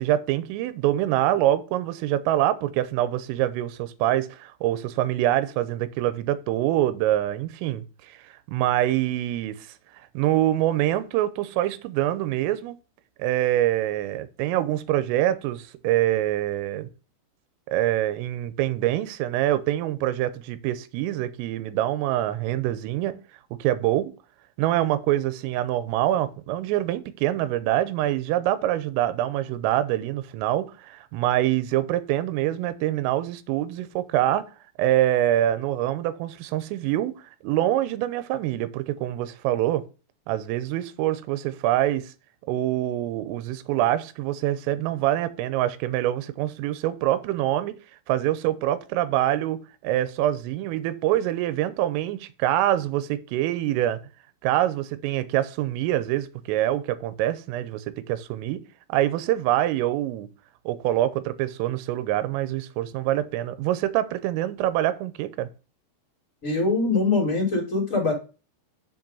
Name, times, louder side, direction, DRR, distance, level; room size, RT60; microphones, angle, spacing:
voice 1, 0.0-8.2 8.5-9.6 10.1-12.8 13.2-16.9 17.7-23.2 23.6-24.1 24.6-34.5 34.8-37.1 37.4-39.8 40.3-42.1 42.5-47.8 48.1-54.0 54.4-58.6 58.9-60.3 60.7-65.5, right 13 dB, 85° right, 3.4 m, -25 dB
voice 2, 66.4-68.1, left 3 dB, 15° left, 3.5 m, -23 dB
7.3 x 5.3 x 5.4 m
omnidirectional pair, 5.8 m